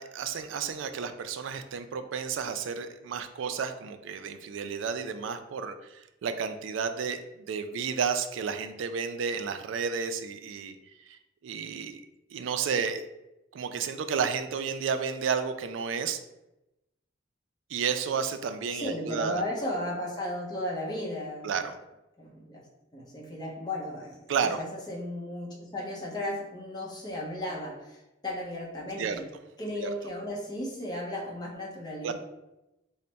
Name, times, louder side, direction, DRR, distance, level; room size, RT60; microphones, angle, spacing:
voice 1, 0.0-10.8 11.1-12.0 12.3-13.0 13.5-16.2 17.7-19.4 21.4-21.8 24.3-24.6 29.0-29.2 29.8-29.9 32.0-32.1, right 6 dB, 75° right, 9 dB, 0.3 m, -32 dB
voice 2, 18.7-21.5 22.2-22.7 22.9-29.2 29.6-32.1, left 1 dB, 20° left, -4 dB, 0.7 m, -35 dB
3.3 x 2.1 x 3.9 m, 0.94 s
head